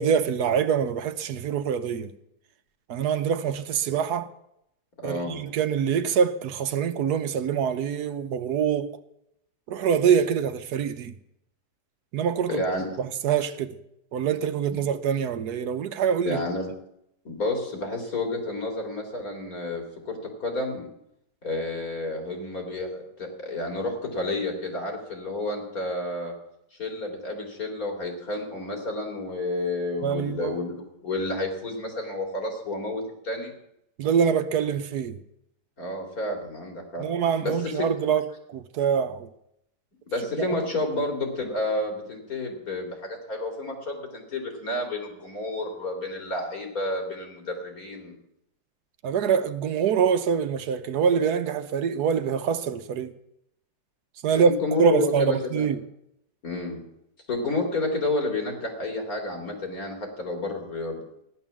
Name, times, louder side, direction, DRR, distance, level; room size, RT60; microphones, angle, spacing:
voice 1, 0.0-2.1 2.9-4.3 5.0-9.0 9.7-11.1 12.1-12.6 13.0-13.7 14.1-16.4 30.0-30.6 34.0-35.2 37.0-39.3 49.0-53.1 54.2-54.5 54.8-55.8, right 7 dB, 75° right, 1.3 m, -25 dB
voice 2, 5.0-5.4 12.5-12.9 14.7-14.8 16.2-16.7 17.3-20.9 21.4-26.3 26.8-30.8 31.0-33.5 35.8-37.1 37.4-37.9 40.1-48.1 54.4-55.7 56.4-56.8 57.3-61.0, left 2 dB, 60° left, 3.7 m, -30 dB
15.0 x 11.5 x 7.3 m
omnidirectional pair, 1.8 m